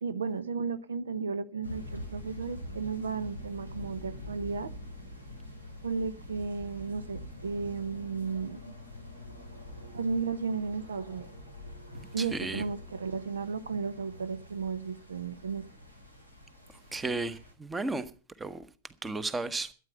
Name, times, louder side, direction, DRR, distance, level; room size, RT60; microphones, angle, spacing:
voice 1, 0.0-4.7 5.8-8.7 9.9-11.3 12.1-15.7, right 5 dB, 70° right, 0.8 m, -34 dB
sound 1, 1.6-17.5, left 1 dB, 85° right, 3.9 m, -45 dB
voice 2, 12.2-12.6 16.9-18.0 18.4-18.7 19.0-19.7, right 3 dB, 15° right, 1.2 m, -33 dB
13.0 x 9.3 x 6.8 m
figure-of-eight pair, 90°, 0 cm